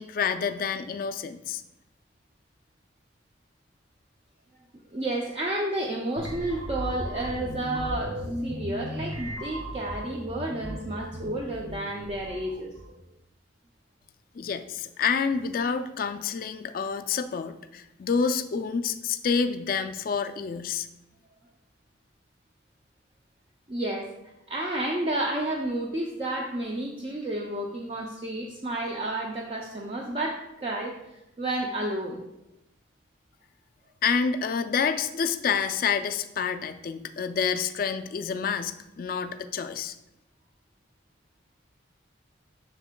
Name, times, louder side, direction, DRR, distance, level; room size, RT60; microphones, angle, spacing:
voice 1, 0.0-1.6 14.4-20.9 34.0-39.9, left 6 dB, 45° left, 9 dB, 0.3 m, -28 dB
voice 2, 4.9-12.7 23.7-24.1 24.5-30.9 31.4-32.2, right 1 dB, 30° right, 0 dB, 0.4 m, -31 dB
sound 1, 6.2-13.0, equal, 85° right, 1.3 m, -36 dB
6.9 x 6.4 x 2.2 m, 0.91 s
head